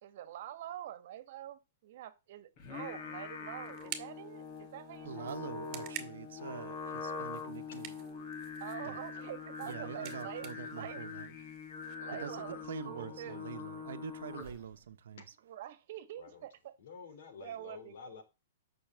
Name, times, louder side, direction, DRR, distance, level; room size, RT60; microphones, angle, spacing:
voice 1, 0.0-5.4 8.6-11.1 12.0-13.4 15.5-16.7 17.4-18.2, right 12 dB, 50° right, 1.5 m, -46 dB
Singing, 2.6-14.7, left 5 dB, 35° left, 2.5 m, -43 dB
sound 1, 2.7-11.9, right 12 dB, 30° right, 1.8 m, -51 dB
voice 2, 5.0-8.0 8.8-9.0 9.6-11.3 12.1-15.2, right 8 dB, 75° right, 1.1 m, -45 dB
voice 3, 12.9-13.6 16.2-16.4 16.8-18.2, left 6 dB, 70° left, 3.5 m, -51 dB
8.9 x 6.3 x 7.7 m
hypercardioid pair, 160°, 0 cm